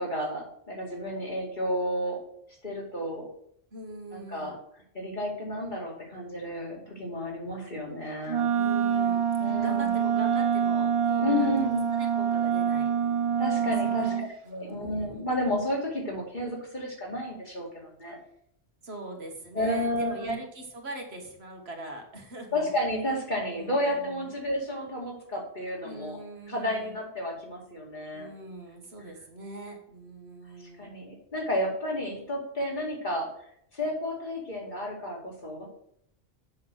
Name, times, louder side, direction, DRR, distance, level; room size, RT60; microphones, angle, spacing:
voice 1, 0.0-2.2 2.6-3.2 4.1-4.5 4.9-8.5 9.4-9.9 11.2-11.9 13.4-18.2 19.5-20.3 22.5-26.2 26.5-28.3 30.6-33.3 33.7-35.7, left 1 dB, 45° left, -2 dB, 2.7 m, -31 dB
voice 2, 3.7-4.5 8.5-15.3 18.8-22.7 23.5-24.4 25.8-27.0 28.1-31.0, right 1 dB, 70° right, 2 dB, 2.0 m, -42 dB
Wind instrument woodwind instrument, 8.3-14.3, right 8 dB, 45° right, 0.4 m, -26 dB
7.6 x 6.0 x 6.3 m, 0.69 s
omnidirectional pair, 1.1 m